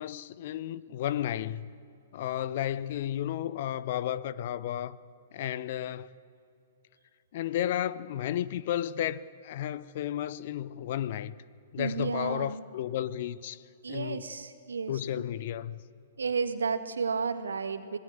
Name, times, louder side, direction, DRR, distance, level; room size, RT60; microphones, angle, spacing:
voice 1, 0.0-1.7 2.1-5.0 5.3-6.1 7.3-11.3 11.7-13.6 13.9-14.3 14.9-15.8, left 11 dB, 45° left, 0.7 m, -33 dB
voice 2, 11.8-12.6 13.8-15.2 16.2-18.0, right 5 dB, 70° right, 1.7 m, -32 dB
26.0 x 18.5 x 8.9 m
figure-of-eight pair, 110°, 0 cm